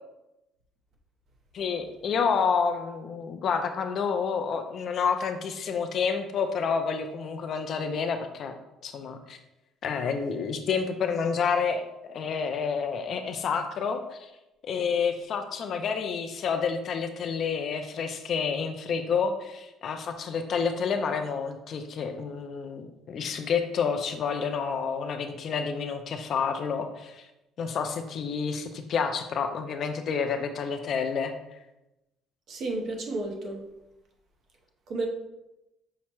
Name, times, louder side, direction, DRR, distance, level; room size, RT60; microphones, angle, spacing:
voice 1, 1.5-8.5 8.8-9.4 9.8-14.3 14.7-27.2 27.6-31.3, left 6 dB, 40° left, 7 dB, 0.4 m, -29 dB
voice 2, 32.5-33.6 34.9-35.0, right 2 dB, 45° right, 2 dB, 0.7 m, -32 dB
5.7 x 2.1 x 4.4 m, 0.94 s
cardioid pair, 170°, 0 cm